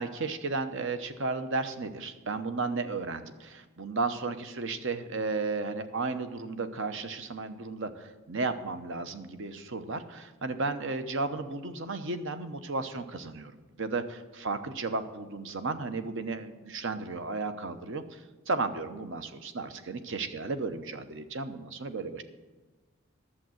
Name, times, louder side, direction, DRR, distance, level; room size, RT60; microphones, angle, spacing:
voice 1, 0.0-13.5 13.8-22.2, right 3 dB, 60° right, 9 dB, 0.9 m, -34 dB
11.5 x 7.4 x 7.8 m, 1.3 s
head